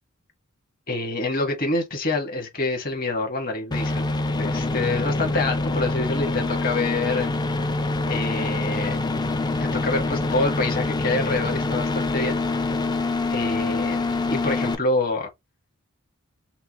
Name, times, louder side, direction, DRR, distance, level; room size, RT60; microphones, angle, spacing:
voice 1, 0.9-7.3 8.1-9.0 9.6-12.4 13.3-14.0 14.3-15.3, left 2 dB, 45° left, 1.6 m, -27 dB
sound 1, 3.7-14.7, left 2 dB, 20° left, 0.4 m, -25 dB
5.9 x 2.2 x 3.0 m
head